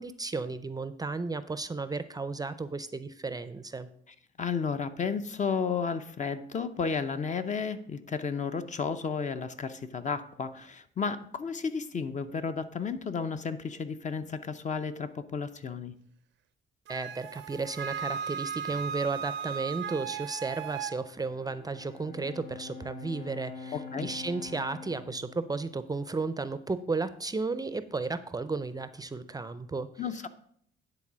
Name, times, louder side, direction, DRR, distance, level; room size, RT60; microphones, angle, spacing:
voice 1, 0.0-3.9 16.9-29.9, right 3 dB, 20° right, 12 dB, 0.5 m, -34 dB
voice 2, 4.4-15.9 23.7-24.1 30.0-30.3, left 5 dB, 40° left, 10 dB, 0.6 m, -33 dB
Wind instrument woodwind instrument, 16.9-21.0, right 7 dB, 75° right, 0.5 m, -36 dB
Bowed string instrument, 21.2-26.7, left 5 dB, 60° left, 3.8 m, -45 dB
9.9 x 3.9 x 6.1 m, 0.65 s
cardioid pair, 90°, 20 cm